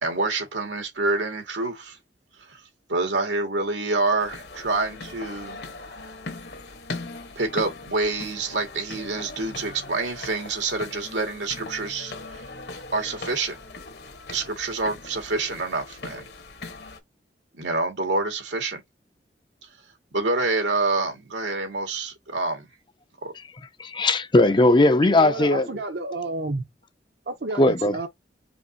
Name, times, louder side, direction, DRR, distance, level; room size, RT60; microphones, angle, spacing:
voice 1, 0.0-2.0 2.5-2.6 2.9-5.6 7.4-12.1 12.9-13.6 14.3-16.2 17.5-18.8 20.1-22.7 23.2-23.3, right 3 dB, 90° right, 2.0 m, -27 dB
sound 1, 4.2-17.0, left 3 dB, 65° left, 1.3 m, -40 dB
voice 2, 23.8-25.7 27.6-28.0, left 2 dB, 25° left, 0.5 m, -18 dB
voice 3, 25.1-26.7 27.3-28.1, right 2 dB, 65° right, 0.8 m, -31 dB
5.1 x 3.0 x 2.8 m
head